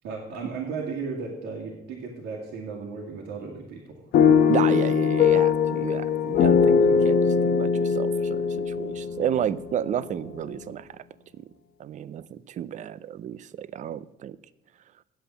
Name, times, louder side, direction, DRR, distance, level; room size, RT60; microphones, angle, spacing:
voice 1, 0.0-4.1, right 5 dB, 90° right, 2.0 m, -35 dB
sound 1, 4.1-10.2, left 6 dB, 70° left, 1.0 m, -21 dB
voice 2, 4.5-10.9 11.8-14.4, right 10 dB, 45° right, 0.5 m, -32 dB
8.8 x 7.8 x 7.0 m
cardioid pair, 110°, 17 cm